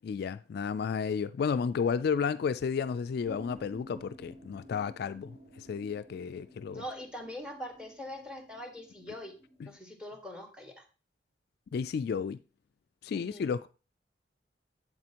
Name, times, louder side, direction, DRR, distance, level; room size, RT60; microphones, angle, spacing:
voice 1, 0.0-6.8 9.6-9.7 11.7-12.4 13.0-13.7, left 6 dB, 60° left, 0.3 m, -32 dB
sound 1, 3.2-9.8, equal, 35° right, 3.6 m, -53 dB
voice 2, 6.7-9.3 9.6-10.8 13.1-13.5, left 1 dB, 5° right, 1.6 m, -43 dB
8.0 x 7.6 x 2.9 m
head